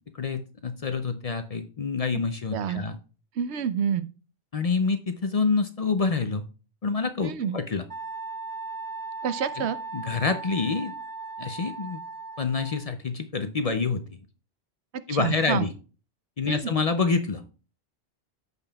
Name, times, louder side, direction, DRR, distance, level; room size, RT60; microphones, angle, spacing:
voice 1, 0.1-3.0 4.5-6.4 6.8-7.8 9.6-9.7 9.9-10.9 11.4-12.0 12.4-14.1 15.1-15.7 16.4-17.4, left 4 dB, 45° left, 9 dB, 0.5 m, -27 dB
voice 2, 2.5-2.8 3.4-4.1 7.2-7.6 9.2-9.8 15.1-15.7 16.5-16.8, right 8 dB, 90° right, 13 dB, 0.9 m, -28 dB
Wind instrument woodwind instrument, 7.9-12.9, right 3 dB, 35° right, 0.4 m, -37 dB
14.0 x 5.2 x 2.3 m, 0.36 s
omnidirectional pair, 1.1 m